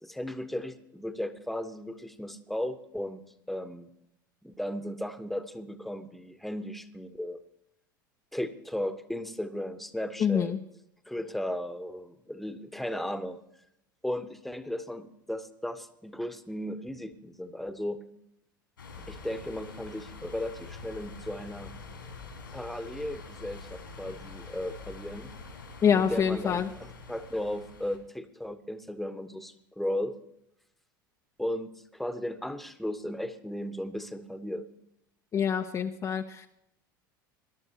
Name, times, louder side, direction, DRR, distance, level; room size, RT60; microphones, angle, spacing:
voice 1, 0.0-3.2 3.5-3.9 4.4-7.4 8.3-10.6 11.1-13.4 14.0-18.1 19.1-21.7 22.5-25.3 25.9-30.2 31.4-34.6, left 1 dB, ahead, 11 dB, 1.0 m, -35 dB
voice 2, 10.2-10.6 25.8-26.7 35.3-36.5, left 7 dB, 30° left, 5 dB, 0.6 m, -26 dB
sound 1, 18.8-28.0, left 4 dB, 85° left, 3.0 m, -45 dB
21.0 x 11.5 x 2.9 m, 0.79 s
figure-of-eight pair, 75°, 11 cm